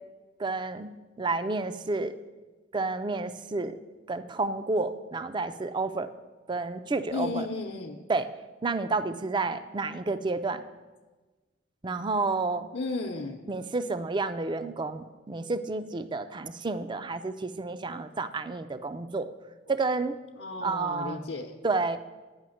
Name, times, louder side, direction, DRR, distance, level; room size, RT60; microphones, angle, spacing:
voice 1, 0.4-0.9 1.2-2.1 2.7-3.8 4.1-6.1 6.5-7.5 8.1-8.3 8.6-10.6 11.8-12.7 13.5-19.3 19.7-20.1 20.6-21.2 21.6-22.0, right 3 dB, 25° right, 11 dB, 0.4 m, -30 dB
voice 2, 7.1-8.0 12.7-13.4 20.4-21.5, left 3 dB, 65° left, 0 dB, 0.8 m, -34 dB
9.6 x 5.8 x 7.7 m, 1.3 s
head